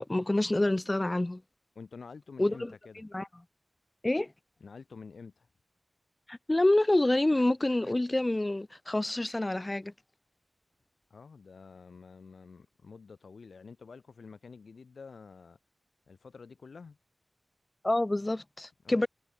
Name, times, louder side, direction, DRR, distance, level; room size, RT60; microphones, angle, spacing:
voice 1, 0.0-1.4 2.4-2.7 3.1-3.3 4.0-4.3 6.3-9.9 17.8-19.1, left 1 dB, 25° left, 0.4 m, -27 dB
voice 2, 1.7-3.0 4.6-5.5 11.1-15.6 16.1-17.0 18.8-19.1, left 5 dB, 90° left, 1.5 m, -49 dB
wide cardioid pair, 65°, 0 cm